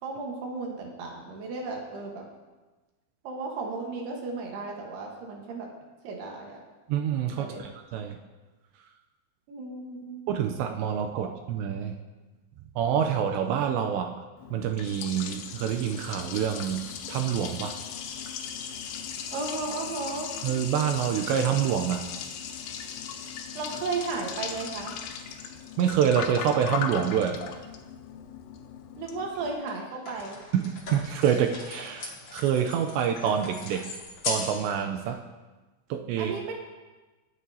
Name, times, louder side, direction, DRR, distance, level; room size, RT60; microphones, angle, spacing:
voice 1, 0.0-2.3 3.2-5.7 6.0-6.6 7.4-7.7 9.5-10.2 11.2-11.3 19.3-20.3 23.5-25.0 29.0-30.4 36.2-36.5, right 3 dB, 70° right, 0 dB, 3.1 m, -34 dB
voice 2, 6.9-8.2 10.3-12.0 12.8-14.1 14.5-17.8 20.4-22.0 25.8-27.4 30.5-33.9 34.3-35.2 35.9-36.3, right 8 dB, 85° right, 4 dB, 2.7 m, -27 dB
Liquid, 14.4-29.5, left 7 dB, 85° left, 3.3 m, -38 dB
sound 1, 29.0-29.1 29.7-34.7 35.0-35.1, left 3 dB, 50° left, 1.9 m, -38 dB
21.5 x 8.4 x 2.8 m, 1.2 s
omnidirectional pair, 5.3 m